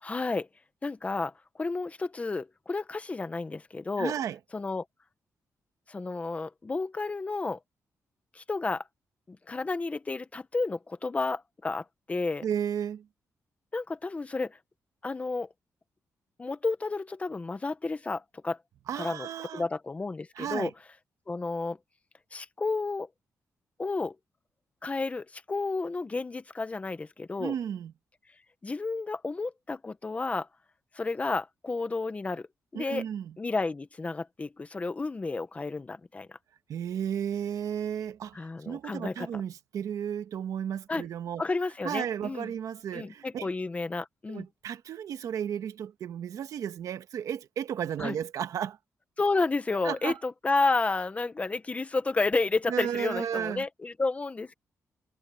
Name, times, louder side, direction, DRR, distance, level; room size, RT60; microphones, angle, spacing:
voice 1, 0.0-0.5 0.8-4.1 4.5-4.8 5.9-7.6 8.3-8.8 9.3-12.4 13.7-14.6 15.0-15.5 16.4-18.6 18.9-19.3 19.5-20.7 21.3-21.8 22.3-23.1 23.8-24.2 24.8-27.5 28.6-30.5 30.9-32.5 32.7-33.0 33.4-36.4 38.3-39.4 40.9-41.0 41.4-42.5 42.9-44.4 48.0-48.2 49.2-54.5, left 3 dB, 25° left, 1.2 m, -31 dB
voice 2, 4.0-4.4 12.4-13.1 18.9-19.7 20.3-20.7 27.4-27.9 32.7-33.4 36.7-38.4 38.6-41.4 41.8-43.5 44.3-48.8 49.8-50.2 52.7-53.6, right 9 dB, 80° right, 1.4 m, -33 dB
wide cardioid pair, 135°, 6 cm